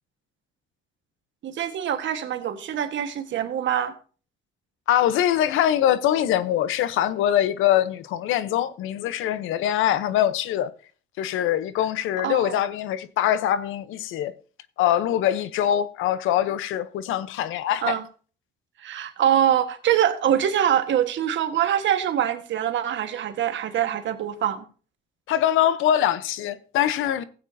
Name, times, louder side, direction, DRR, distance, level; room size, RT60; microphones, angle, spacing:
voice 1, 1.4-3.9 12.2-12.6 17.8-18.0 18.8-24.6, right 10 dB, 70° right, 1.4 m, -24 dB
voice 2, 4.9-10.7 11.2-14.3 14.8-18.0 25.3-27.2, left 11 dB, 90° left, 0.8 m, -23 dB
16.5 x 8.8 x 2.7 m
cardioid pair, 90°, 20 cm